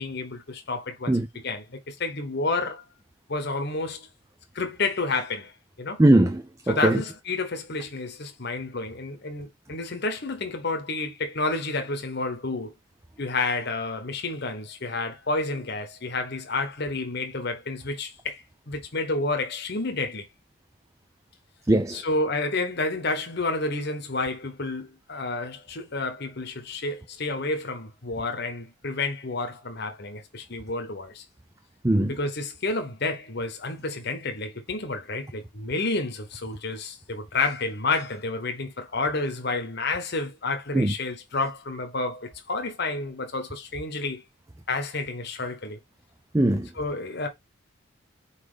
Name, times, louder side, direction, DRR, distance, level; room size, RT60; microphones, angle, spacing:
voice 1, 0.0-1.2 1.4-2.8 3.3-4.1 4.5-5.5 5.8-6.0 6.7-12.7 13.2-20.3 21.9-31.2 32.1-44.2 44.7-45.8 46.8-47.3, left 3 dB, 55° left, 1.2 m, -30 dB
voice 2, 6.0-7.0 21.7-22.0 31.8-32.1 40.7-40.9 46.3-46.7, right 1 dB, 15° right, 0.5 m, -20 dB
4.8 x 4.2 x 5.0 m
head